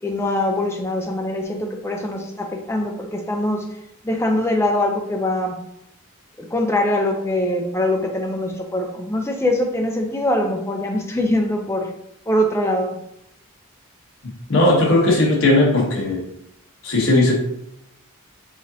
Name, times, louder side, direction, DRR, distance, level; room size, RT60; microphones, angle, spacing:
voice 1, 0.0-3.7 4.0-5.5 6.4-11.9 12.3-12.9, left 1 dB, 10° left, 2 dB, 0.5 m, -22 dB
voice 2, 14.5-16.2 16.8-17.4, left 2 dB, 60° left, -3 dB, 1.1 m, -17 dB
5.0 x 3.9 x 2.7 m, 0.81 s
head